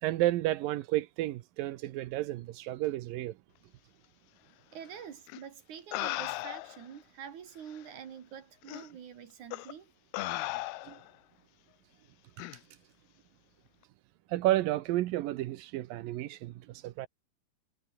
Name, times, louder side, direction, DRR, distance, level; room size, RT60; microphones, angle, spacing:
voice 1, 0.0-3.3 10.9-11.0 14.3-17.1, right 15 dB, 75° right, 2.1 m, -31 dB
voice 2, 4.7-9.9, right 8 dB, 50° right, 2.9 m, -46 dB
sound 1, 5.3-5.4 5.9-6.9 7.7-7.8 8.7-8.9 9.5-9.7 10.1-11.1 12.4-12.6, left 18 dB, 75° left, 2.5 m, -36 dB
omnidirectional pair, 5.1 m